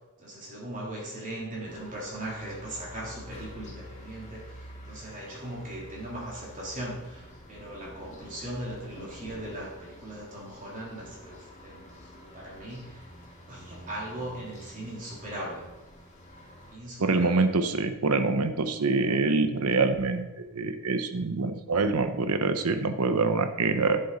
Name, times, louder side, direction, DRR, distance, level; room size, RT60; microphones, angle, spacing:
voice 1, 0.2-13.1 13.5-15.6 16.7-17.5, right 1 dB, 35° right, -4 dB, 3.3 m, -39 dB
prelude side, 1.6-16.8, left 1 dB, 30° left, 2.5 m, -48 dB
voice 2, 17.0-24.0, right 3 dB, 80° right, 9 dB, 0.9 m, -25 dB
10.0 x 7.7 x 4.1 m, 1.1 s
head